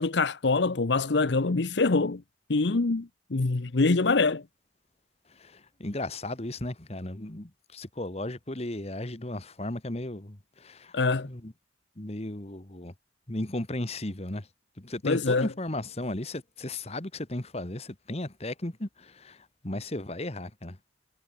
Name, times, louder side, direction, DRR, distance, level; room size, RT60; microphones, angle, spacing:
voice 1, 0.0-2.2 2.5-4.4 10.9-11.3 15.0-15.5, left 3 dB, 70° left, 0.8 m, -24 dB
voice 2, 5.3-11.0 11.2-11.5 12.0-12.9 13.3-14.5 14.8-20.8, left 1 dB, 35° left, 1.6 m, -35 dB
head